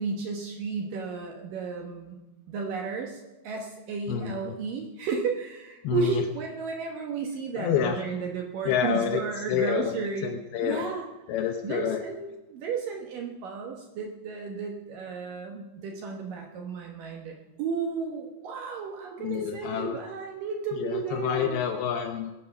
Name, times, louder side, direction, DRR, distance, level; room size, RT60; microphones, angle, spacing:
voice 1, 0.0-2.2 2.5-10.3 10.6-11.0 11.6-21.6, right 5 dB, 75° right, 1 dB, 2.0 m, -33 dB
voice 2, 4.1-4.6 5.8-6.2 7.6-8.0 8.7-9.2 9.5-9.9 10.2-10.9 11.3-12.0 19.2-20.0 20.8-22.4, left 9 dB, 85° left, 4 dB, 2.2 m, -28 dB
20.5 x 7.7 x 5.8 m, 1.0 s
omnidirectional pair, 5.6 m